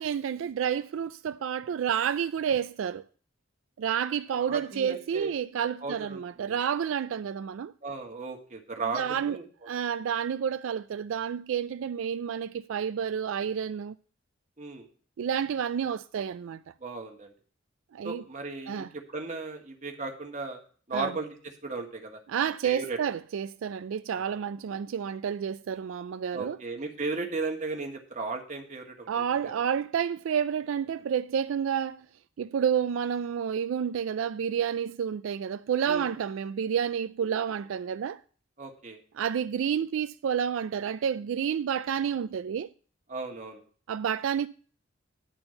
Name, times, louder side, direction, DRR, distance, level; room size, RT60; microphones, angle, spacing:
voice 1, 0.0-3.0 3.8-7.7 8.9-9.4 9.6-13.9 15.2-16.6 17.9-18.2 18.7-18.9 20.9-21.1 22.3-26.6 29.1-32.1 32.4-38.2 39.2-42.7 43.9-44.5, right 8 dB, 80° right, 0.3 m, -30 dB
voice 2, 4.3-5.3 5.8-6.6 7.8-9.4 14.6-14.9 16.8-17.3 18.0-20.6 20.9-22.2 22.6-23.0 24.1-24.3 26.3-29.5 35.9-36.1 38.6-39.0 43.1-43.6, right 3 dB, 35° right, 1.5 m, -36 dB
10.5 x 4.4 x 7.7 m
head